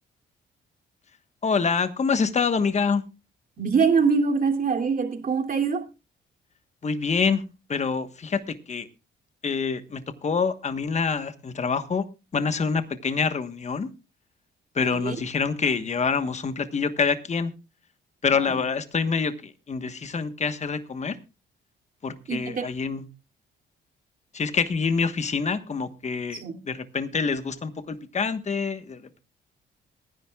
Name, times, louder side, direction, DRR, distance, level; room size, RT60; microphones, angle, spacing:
voice 1, 1.4-3.0 6.8-7.4 7.7-8.9 9.4-12.0 12.3-13.9 14.7-17.5 18.2-21.2 22.0-23.0 24.3-29.2, left 5 dB, 35° left, 1.3 m, -26 dB
voice 2, 3.6-5.8 14.8-15.2 18.3-18.6 22.3-22.7 26.3-26.6, right 5 dB, 45° right, 2.8 m, -24 dB
22.5 x 10.5 x 2.4 m
cardioid pair, 90°, 20 cm